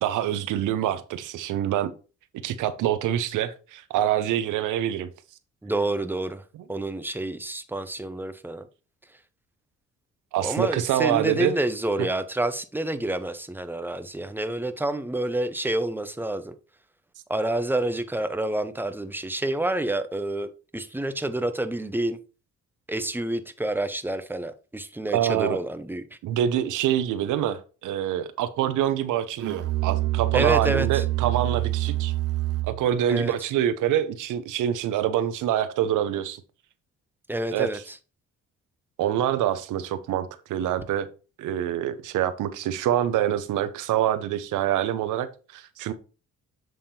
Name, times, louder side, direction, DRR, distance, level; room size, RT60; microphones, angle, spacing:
voice 1, 0.0-1.9 2.4-5.1 10.3-11.5 25.1-25.6 26.2-32.1 32.7-36.4 37.5-37.7 39.0-41.1 41.4-45.9, right 11 dB, 85° right, 0.8 m, -25 dB
voice 2, 5.6-6.4 6.7-8.7 10.4-16.5 17.3-22.2 22.9-26.2 30.3-31.0 33.1-33.3 37.3-38.0, right 1 dB, 5° right, 0.7 m, -28 dB
Musical instrument, 29.4-32.9, right 16 dB, 50° right, 0.6 m, -26 dB
7.7 x 3.6 x 4.3 m
cardioid pair, 90°, 30 cm